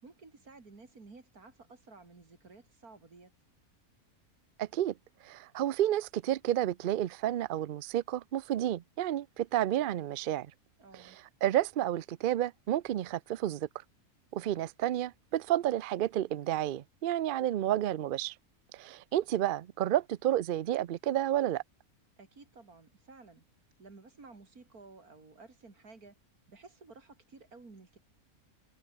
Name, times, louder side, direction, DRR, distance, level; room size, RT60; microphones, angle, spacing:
voice 1, 0.0-3.3 10.8-11.2 22.2-23.5 23.8-26.2 26.5-28.0, right 3 dB, 90° right, 4.0 m, -54 dB
voice 2, 4.6-4.9 5.2-10.5 10.9-11.1 11.4-13.7 14.3-18.3 18.7-21.6, right 12 dB, 70° right, 0.5 m, -31 dB
omnidirectional pair, 1.5 m